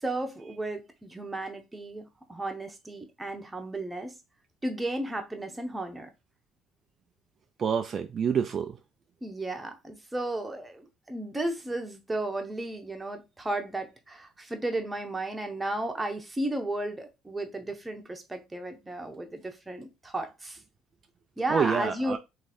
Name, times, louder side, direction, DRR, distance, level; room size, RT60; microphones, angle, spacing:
voice 1, 0.0-4.1 4.6-6.1 9.2-20.6 21.4-22.2, right 1 dB, 10° right, 1.0 m, -34 dB
voice 2, 7.6-8.8 21.5-22.2, right 7 dB, 40° right, 0.4 m, -27 dB
3.3 x 3.1 x 4.2 m
cardioid pair, 105°, 0 cm